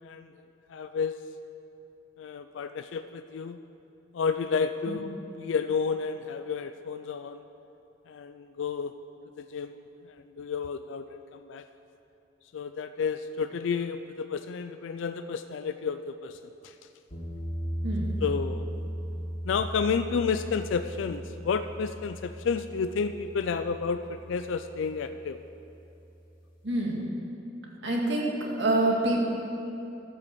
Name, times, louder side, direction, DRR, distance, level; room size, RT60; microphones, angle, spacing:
voice 1, 0.0-1.1 2.2-3.6 4.1-7.4 8.1-8.9 9.4-11.7 12.5-16.7 18.2-18.7 19.4-25.4, left 5 dB, 75° left, 9 dB, 0.4 m, -31 dB
sound 1, 17.1-26.0, equal, 50° left, 2.4 m, -37 dB
voice 2, 17.8-18.2 26.6-27.1 27.8-29.3, right 1 dB, 65° right, -2 dB, 2.0 m, -26 dB
13.5 x 5.8 x 7.0 m, 2.9 s
head